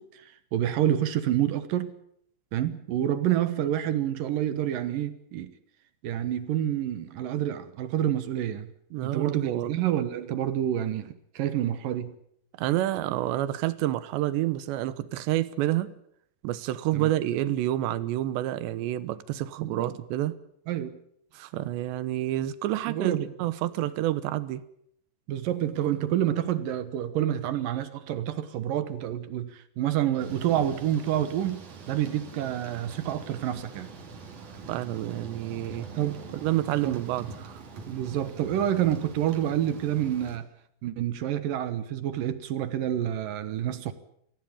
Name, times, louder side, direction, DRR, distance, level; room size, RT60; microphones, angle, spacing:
voice 1, 0.0-1.9 2.5-5.5 6.0-8.7 9.0-12.2 16.9-17.1 19.6-20.0 20.7-21.0 22.9-23.3 25.3-33.9 36.0-36.2 36.8-37.0 37.9-40.5 40.8-43.9, right 11 dB, 65° right, 2.5 m, -28 dB
voice 2, 8.9-9.7 12.6-15.9 16.4-20.3 21.3-24.6 34.7-35.9 36.3-37.6, right 14 dB, 85° right, 3.3 m, -28 dB
Thunder / Rain, 30.2-40.4, right 4 dB, 50° right, 4.0 m, -44 dB
25.0 x 16.5 x 8.7 m
omnidirectional pair, 5.0 m